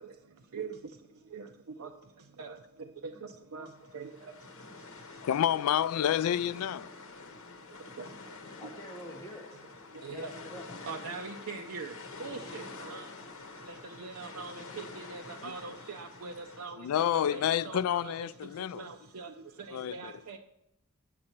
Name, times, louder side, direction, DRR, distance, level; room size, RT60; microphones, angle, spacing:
voice 1, 0.0-5.3 7.1-8.7 9.5-10.3 10.8-20.4, right 4 dB, 80° right, 0.6 m, -44 dB
sound 1, 3.7-16.7, left 3 dB, 65° left, 1.2 m, -47 dB
voice 2, 5.2-6.9 15.4-15.5 16.8-18.9 19.7-20.1, left 10 dB, 85° left, 0.3 m, -29 dB
voice 3, 8.6-9.5 10.1-10.9, equal, 15° left, 1.6 m, -46 dB
8.8 x 8.5 x 4.4 m
head